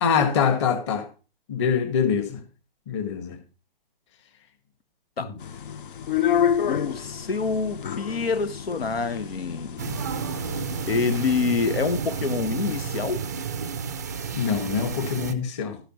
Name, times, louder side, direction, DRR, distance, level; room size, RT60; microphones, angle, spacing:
voice 1, 0.0-1.1 1.5-2.4 2.9-3.4 5.2-5.4 14.3-15.8, left 7 dB, 30° left, 1.7 m, -24 dB
sound 1, 5.4-11.4, left 9 dB, 60° left, 0.7 m, -29 dB
voice 2, 6.7-9.9 10.9-13.2, left 5 dB, 85° left, 1.2 m, -26 dB
sound 2, 9.8-15.3, right 6 dB, 20° right, 0.4 m, -31 dB
12.5 x 9.9 x 3.1 m
hypercardioid pair, 160°, 29 cm